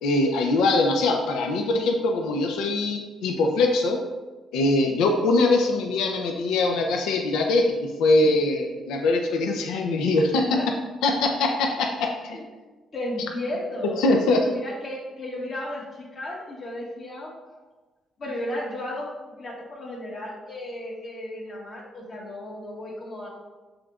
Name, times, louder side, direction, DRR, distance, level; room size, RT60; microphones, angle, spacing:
voice 1, 0.0-4.0 4.5-10.7 11.0-12.4 14.0-14.4, left 2 dB, 90° left, 3 dB, 0.4 m, -22 dB
voice 2, 12.9-17.6 18.2-23.3, left 1 dB, 50° left, -4 dB, 1.4 m, -34 dB
6.8 x 3.0 x 2.4 m, 1.2 s
cardioid pair, 90°, 0 cm